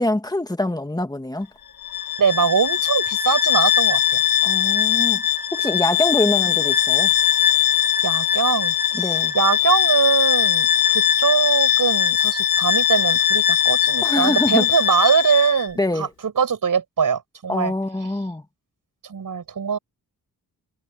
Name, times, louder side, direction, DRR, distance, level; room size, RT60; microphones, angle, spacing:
voice 1, 0.0-1.5 4.4-5.2 5.5-7.1 8.9-9.3 14.0-14.7 15.8-16.1 17.5-18.4, left 1 dB, 10° left, 1.7 m, -24 dB
Bowed string instrument, 1.8-15.7, left 11 dB, 70° left, 2.0 m, -20 dB
voice 2, 2.2-4.2 8.0-17.7 19.0-19.8, right 6 dB, 55° right, 7.9 m, -22 dB
wide cardioid pair, 145°, 38 cm